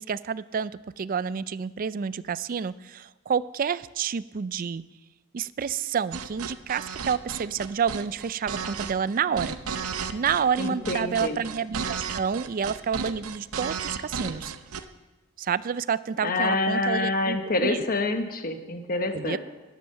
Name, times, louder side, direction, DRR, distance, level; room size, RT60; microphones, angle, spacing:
voice 1, 0.0-4.8 5.3-9.6 10.1-14.5 15.4-17.9 19.1-19.4, right 7 dB, 40° right, 17 dB, 0.4 m, -29 dB
sound 1, 6.1-14.8, right 6 dB, 80° right, 0.7 m, -34 dB
voice 2, 10.6-11.4 16.2-19.4, left 2 dB, 40° left, 6 dB, 1.1 m, -27 dB
11.5 x 10.5 x 6.8 m, 1.1 s
head